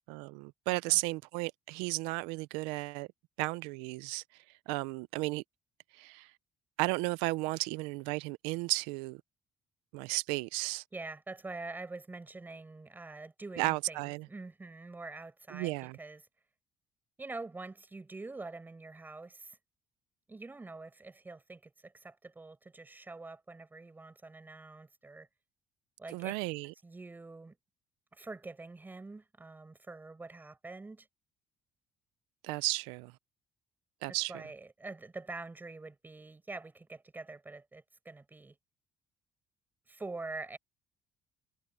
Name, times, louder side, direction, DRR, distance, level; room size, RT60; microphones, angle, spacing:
voice 1, 0.1-3.1 3.4-4.2 4.7-5.4 5.9-6.3 6.8-9.2 9.9-10.8 13.6-14.3 15.5-16.0 26.1-26.7 32.4-33.1 34.0-34.4, right 22 dB, 90° right, 0.5 m, -34 dB
voice 2, 10.9-16.3 17.2-19.6 20.3-25.3 26.0-26.3 26.8-27.6 28.1-31.1 34.1-38.6 39.9-40.6, right 3 dB, 20° right, 5.7 m, -45 dB
supercardioid pair, 70°, 9 cm